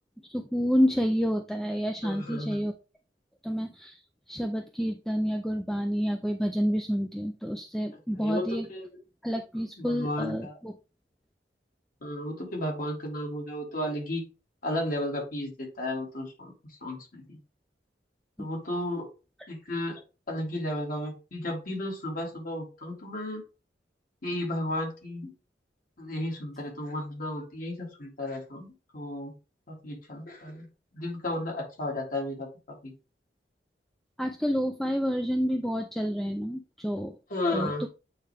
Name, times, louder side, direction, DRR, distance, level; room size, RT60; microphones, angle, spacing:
voice 1, 0.3-2.7 3.4-4.0 4.3-8.7 9.2-10.7 18.4-18.5 34.2-37.2 37.5-37.9, equal, ahead, 6 dB, 0.4 m, -29 dB
voice 2, 2.0-2.7 8.1-9.0 9.8-10.6 12.0-14.2 14.6-16.5 16.8-17.4 18.4-19.1 19.5-20.0 20.3-23.4 24.2-25.3 26.0-29.3 29.7-30.7 30.9-32.5 32.8-32.9 37.3-37.9, left 1 dB, 55° left, 0 dB, 2.2 m, -33 dB
8.5 x 3.3 x 3.3 m, 0.31 s
head